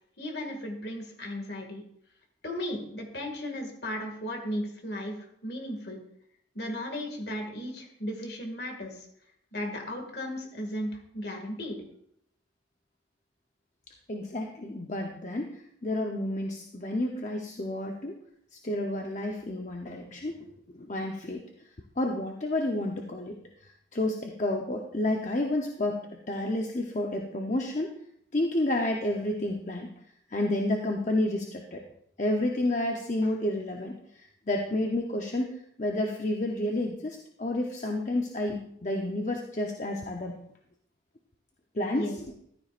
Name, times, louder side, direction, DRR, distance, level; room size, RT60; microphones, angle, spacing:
voice 1, 0.2-1.8 2.4-6.0 6.5-9.1 9.5-11.8 41.9-42.2, left 1 dB, 60° left, 2 dB, 2.1 m, -35 dB
voice 2, 14.1-18.2 18.5-21.4 22.0-23.4 23.6-27.9 28.3-29.9 30.3-31.8 32.2-33.9 34.5-35.5 35.8-40.4 41.7-42.1, left 1 dB, 40° left, 1 dB, 0.8 m, -30 dB
14.5 x 12.5 x 2.5 m, 0.71 s
head